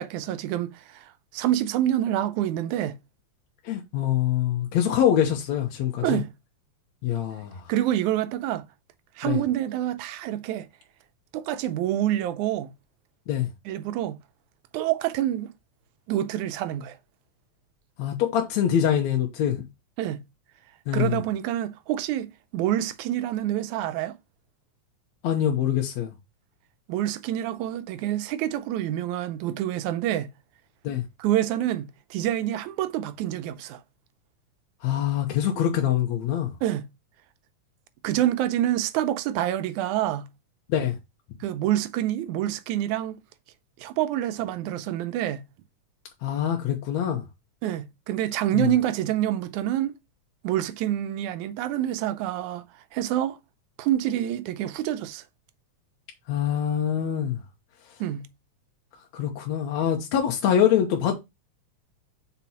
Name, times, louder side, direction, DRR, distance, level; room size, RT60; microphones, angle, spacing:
voice 1, 0.0-3.0 6.0-6.3 7.7-8.6 9.2-10.7 11.3-12.7 13.7-14.2 14.7-15.5 16.1-17.0 20.0-20.2 20.9-24.2 26.9-30.3 31.2-33.8 36.6-36.9 38.0-40.3 41.4-43.2 43.8-45.5 47.6-50.0 50.4-52.6 52.9-53.4 53.8-55.2 58.0-58.3, right 12 dB, 85° right, 2.1 m, -27 dB
voice 2, 3.7-6.2 7.0-7.6 9.2-9.4 13.3-13.5 18.0-19.6 20.9-21.2 25.2-26.1 30.8-31.0 34.8-36.5 40.7-41.0 46.2-47.2 48.5-48.7 56.3-57.4 59.1-61.1, left 10 dB, 75° left, 2.3 m, -24 dB
6.0 x 4.2 x 5.8 m
omnidirectional pair, 3.4 m